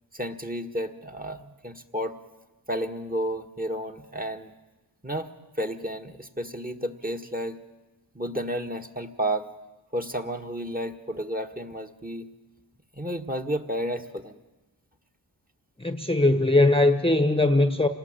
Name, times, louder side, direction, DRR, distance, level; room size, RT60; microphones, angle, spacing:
voice 1, 0.1-2.2 2.7-4.5 5.0-5.3 5.6-7.6 8.1-9.5 9.9-12.3 12.9-14.4, equal, 20° right, 1.7 m, -31 dB
voice 2, 15.8-17.9, left 2 dB, 10° left, 1.2 m, -20 dB
27.0 x 19.5 x 8.9 m
wide cardioid pair, 65°, 45 cm